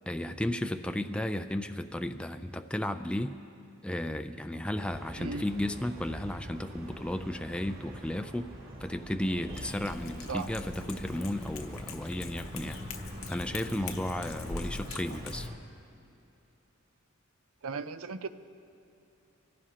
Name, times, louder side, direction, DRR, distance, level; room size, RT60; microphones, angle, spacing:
voice 1, 0.1-3.4 3.8-8.5 8.8-12.8 13.3-15.5, left 1 dB, 5° left, 7 dB, 0.4 m, -34 dB
sound 1, 4.7-15.6, equal, 45° right, 2.1 m, -44 dB
Cat, 9.5-15.5, left 3 dB, 65° left, 0.9 m, -43 dB
voice 2, 17.6-18.3, right 4 dB, 75° right, 11 dB, 0.6 m, -36 dB
25.0 x 16.0 x 2.9 m, 2.7 s
head